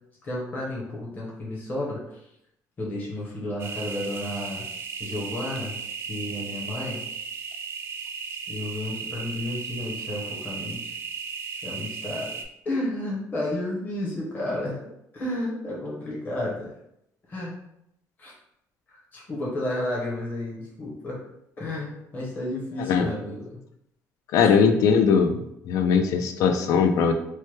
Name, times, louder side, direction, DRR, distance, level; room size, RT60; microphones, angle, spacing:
voice 1, 0.2-2.0 2.8-4.6 5.0-5.7 6.1-7.0 8.5-10.9 11.6-12.3 12.6-14.8 15.1-16.7 17.3-17.5 18.2-18.3 18.9-21.2 21.6-23.5 24.4-24.5, left 1 dB, 30° left, -4 dB, 0.8 m, -32 dB
sound 1, 3.6-12.4, right 6 dB, 45° right, 0.4 m, -35 dB
voice 2, 24.3-25.4 25.7-27.1, left 6 dB, 70° left, 6 dB, 0.4 m, -20 dB
3.0 x 2.2 x 3.2 m, 0.79 s
cardioid pair, 145°, 6 cm